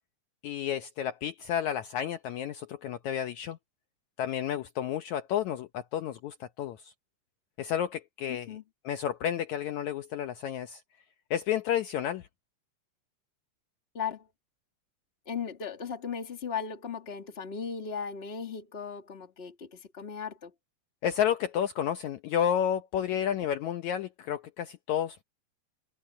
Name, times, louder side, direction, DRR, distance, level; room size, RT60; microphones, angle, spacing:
voice 1, 0.4-3.6 4.2-6.9 7.6-8.5 8.8-10.8 11.3-12.3 21.0-25.2, left 9 dB, 70° left, 2.0 m, -31 dB
voice 2, 8.3-8.6 13.9-14.3 15.3-20.5, left 6 dB, 20° left, 1.9 m, -37 dB
omnidirectional pair, 3.8 m